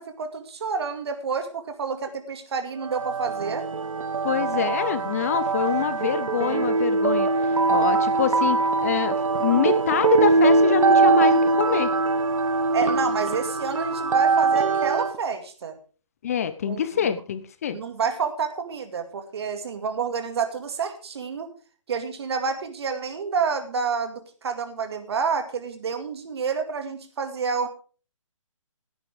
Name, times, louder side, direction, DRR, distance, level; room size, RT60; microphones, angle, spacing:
voice 1, 0.0-3.6 12.7-15.8 16.7-17.1 17.7-21.5 21.9-27.7, right 5 dB, 50° right, 7 dB, 2.3 m, -29 dB
sound 1, 2.8-15.2, right 3 dB, 80° right, 1.3 m, -22 dB
voice 2, 4.2-7.3 7.7-11.9 16.2-17.8, left 8 dB, 30° left, 13 dB, 0.6 m, -25 dB
17.0 x 9.7 x 3.6 m, 0.38 s
hypercardioid pair, 165°, 17 cm